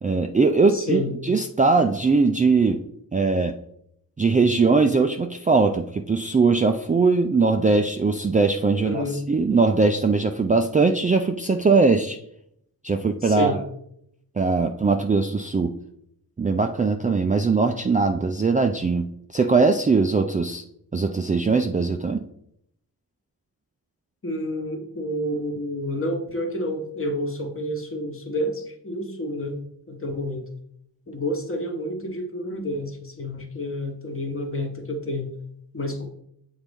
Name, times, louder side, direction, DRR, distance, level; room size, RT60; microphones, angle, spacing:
voice 1, 0.0-2.8 3.1-3.5 4.2-12.2 12.8-13.6 14.4-15.8 16.4-20.6 20.9-22.2, right 4 dB, 20° right, 5 dB, 0.3 m, -21 dB
voice 2, 0.7-1.1 8.8-9.2 13.2-13.6 24.2-29.5 29.9-30.5 31.1-35.3 35.7-36.0, left 1 dB, 35° left, 3 dB, 1.1 m, -29 dB
7.3 x 3.9 x 3.5 m, 0.72 s
wide cardioid pair, 90°, 38 cm